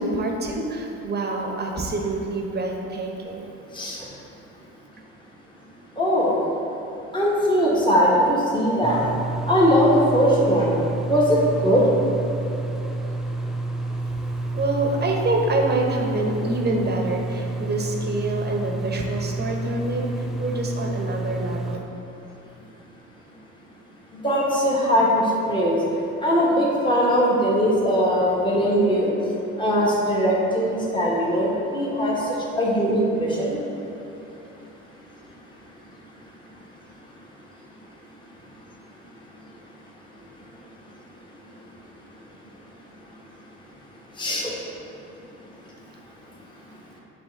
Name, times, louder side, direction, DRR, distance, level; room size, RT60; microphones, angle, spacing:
voice 1, 0.0-3.5 14.5-21.8, right 2 dB, 30° right, 1 dB, 1.0 m, -26 dB
voice 2, 6.0-6.4 7.1-9.0 9.5-10.7 11.0-11.8 24.1-25.8 26.2-29.1 29.6-32.2 32.6-33.6 44.2-44.5, equal, 15° left, -5 dB, 1.3 m, -20 dB
sound 1, 8.8-21.8, right 2 dB, ahead, 0.3 m, -29 dB
7.2 x 3.1 x 4.5 m, 2.8 s
supercardioid pair, 75°, 32 cm